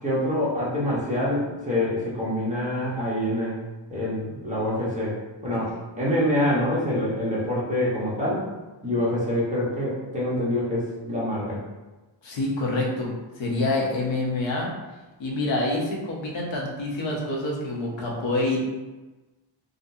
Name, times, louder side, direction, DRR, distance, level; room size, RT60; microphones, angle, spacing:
voice 1, 0.0-3.6 3.9-5.1 5.4-8.4 8.8-11.6, left 1 dB, 15° right, -7 dB, 1.1 m, -26 dB
voice 2, 12.2-14.7 15.2-18.6, left 2 dB, 75° left, -2 dB, 0.9 m, -27 dB
3.8 x 2.3 x 2.7 m, 1.2 s
wide cardioid pair, 125°, 46 cm